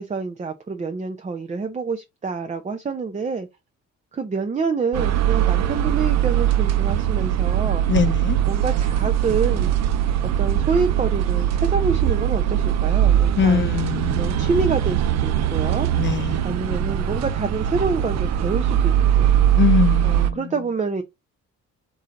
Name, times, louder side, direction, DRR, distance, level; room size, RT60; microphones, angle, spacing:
voice 1, 0.0-3.5 4.1-7.9 8.4-9.7 10.4-13.7 14.1-15.9 16.4-19.3 20.0-21.0, right 4 dB, 25° right, 0.6 m, -27 dB
sound 1, 4.9-20.3, right 11 dB, 60° right, 0.6 m, -21 dB
voice 2, 7.9-8.4 13.4-14.5 15.9-16.5 19.6-20.4, left 7 dB, 40° left, 0.6 m, -22 dB
3.9 x 3.0 x 3.7 m
cardioid pair, 90°, 30 cm